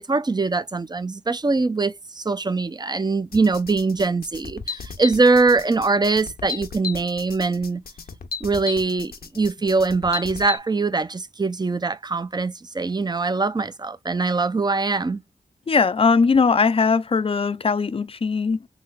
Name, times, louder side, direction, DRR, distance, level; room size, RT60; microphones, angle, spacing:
voice 1, 0.0-7.8 8.4-15.2, right 3 dB, 25° right, 0.5 m, -22 dB
sound 1, 3.3-10.6, left 5 dB, 65° left, 0.7 m, -34 dB
voice 2, 15.7-18.6, left 5 dB, 35° left, 0.4 m, -19 dB
3.3 x 3.2 x 2.3 m
cardioid pair, 40°, 16 cm